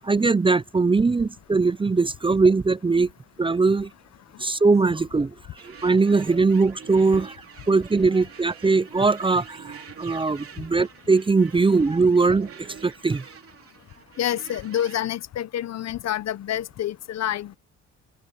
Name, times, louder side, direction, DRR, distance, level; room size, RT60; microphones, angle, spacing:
voice 1, 0.0-3.1 3.4-3.9 4.4-5.3 5.6-7.3 7.7-13.2, right 4 dB, 15° right, 0.6 m, -21 dB
sound 1, 5.6-15.1, right 7 dB, 50° right, 3.1 m, -46 dB
voice 2, 14.2-17.6, left 11 dB, 60° left, 0.8 m, -28 dB
cardioid pair, 90°, 30 cm